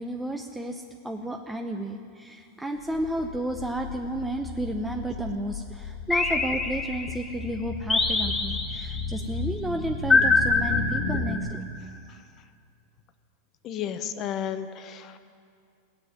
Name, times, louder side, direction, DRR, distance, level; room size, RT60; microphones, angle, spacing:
voice 1, 0.0-11.6, right 1 dB, 5° right, 4 dB, 0.7 m, -32 dB
sound 1, 2.9-11.4, left 4 dB, 65° left, 1.7 m, -34 dB
sound 2, 6.1-7.2 7.9-9.0 10.1-11.6, left 3 dB, 10° left, 1.4 m, -24 dB
voice 2, 13.6-15.2, left 9 dB, 35° left, 10 dB, 0.9 m, -33 dB
17.5 x 7.7 x 9.7 m, 2.3 s
supercardioid pair, 145°, 0 cm